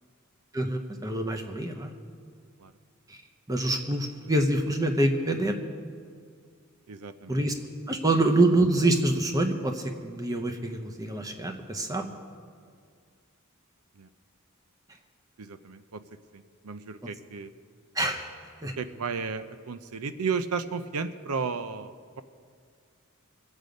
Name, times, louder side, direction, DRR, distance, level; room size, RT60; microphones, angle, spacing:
voice 1, 0.5-1.9 3.1-3.2 3.5-5.6 7.3-7.5 7.9-12.1 17.9-18.7, right 2 dB, 15° right, 4 dB, 0.9 m, -26 dB
voice 2, 6.9-7.4 7.9-8.0 14.0-14.1 15.4-16.0 16.3-17.5 18.8-22.2, right 5 dB, 90° right, 11 dB, 0.6 m, -34 dB
23.0 x 8.2 x 5.2 m, 2.1 s
head